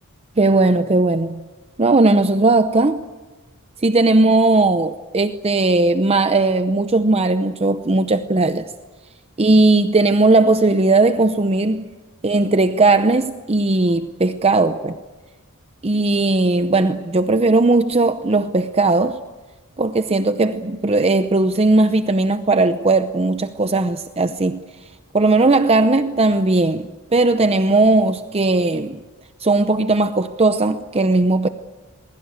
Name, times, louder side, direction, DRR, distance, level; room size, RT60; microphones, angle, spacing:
voice 1, 0.4-1.4 1.8-3.0 3.8-8.7 9.4-11.9 12.2-15.0 15.8-19.2 19.8-24.6 25.1-29.0 29.4-31.5, right 2 dB, 25° right, 0.7 m, -17 dB
27.5 x 21.0 x 8.1 m
head